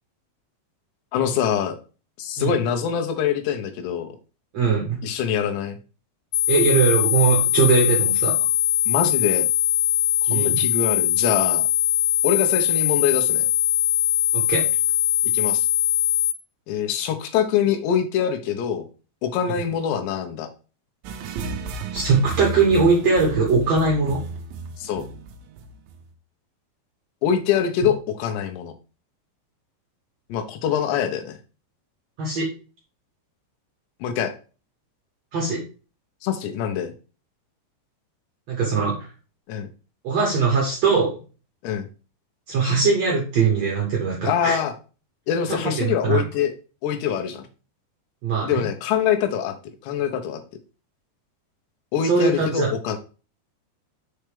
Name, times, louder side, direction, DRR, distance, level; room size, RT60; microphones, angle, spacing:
voice 1, 1.1-1.8 2.2-4.1 5.0-5.8 8.9-9.5 10.2-11.7 12.2-13.5 15.3-15.7 16.7-18.9 19.2-20.5 24.8-25.1 27.2-28.7 30.3-31.4 34.0-34.3 36.2-36.9 39.5-39.7 41.6-41.9 44.3-44.7 45.3-46.5 46.8-47.5 48.4-49.6 49.8-50.4 51.9-53.0, left 8 dB, 80° left, 6 dB, 2.9 m, -24 dB
voice 2, 4.5-5.0 6.5-8.3 10.3-10.6 14.3-14.6 19.5-19.6 21.9-24.2 32.2-32.5 35.3-35.6 38.5-39.0 40.0-41.1 42.5-44.6 45.5-46.2 48.2-48.6 52.0-52.7, right 4 dB, 60° right, -3 dB, 1.9 m, -21 dB
sound 1, 6.3-16.3, left 12 dB, 65° left, 2.1 m, -21 dB
sound 2, 21.0-26.1, right 4 dB, 85° right, 2.0 m, -33 dB
6.3 x 4.5 x 3.3 m, 0.34 s
omnidirectional pair, 5.0 m